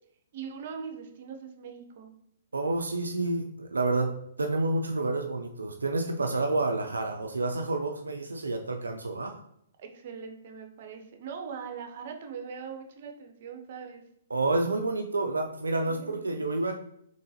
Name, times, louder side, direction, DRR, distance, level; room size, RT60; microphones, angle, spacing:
voice 1, 0.3-2.1 9.8-14.0 15.9-16.5, right 6 dB, 50° right, 4 dB, 0.7 m, -41 dB
voice 2, 2.5-9.4 14.3-16.8, right 2 dB, 90° right, 4 dB, 0.3 m, -29 dB
3.7 x 3.0 x 2.8 m, 0.72 s
hypercardioid pair, 130°, 0 cm